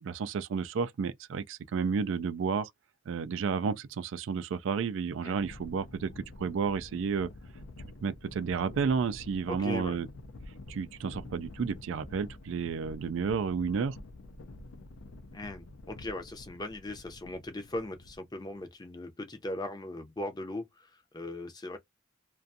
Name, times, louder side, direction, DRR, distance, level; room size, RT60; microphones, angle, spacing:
voice 1, 0.0-2.7 3.1-7.3 8.0-10.1 10.7-14.0, right 5 dB, 70° right, 0.3 m, -31 dB
sound 1, 5.3-18.7, left 2 dB, 80° left, 0.5 m, -48 dB
voice 2, 9.5-10.0 15.3-21.8, left 1 dB, 20° left, 0.6 m, -39 dB
2.5 x 2.3 x 2.6 m
head